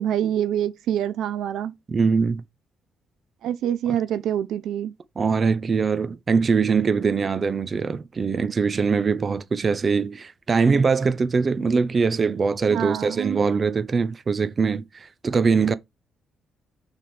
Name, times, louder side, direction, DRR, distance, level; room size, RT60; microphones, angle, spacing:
voice 1, 0.0-1.7 3.4-4.9 12.7-13.4, right 10 dB, 80° right, 0.5 m, -26 dB
voice 2, 1.9-2.4 5.2-15.7, right 5 dB, 40° right, 0.7 m, -22 dB
6.5 x 3.5 x 4.7 m
cardioid pair, 90°, 0 cm